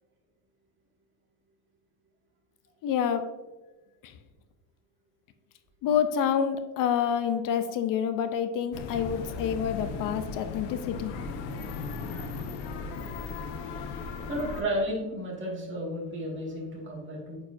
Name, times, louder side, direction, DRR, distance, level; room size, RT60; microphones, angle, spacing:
voice 1, 2.8-3.3 4.0-4.1 5.8-11.1, left 8 dB, 45° left, 10 dB, 0.5 m, -28 dB
sound 1, 8.7-14.6, left 4 dB, 70° left, 0.9 m, -36 dB
voice 2, 14.2-17.4, equal, 25° right, -2 dB, 1.8 m, -33 dB
8.5 x 4.8 x 2.5 m, 1.1 s
cardioid pair, 140°, 47 cm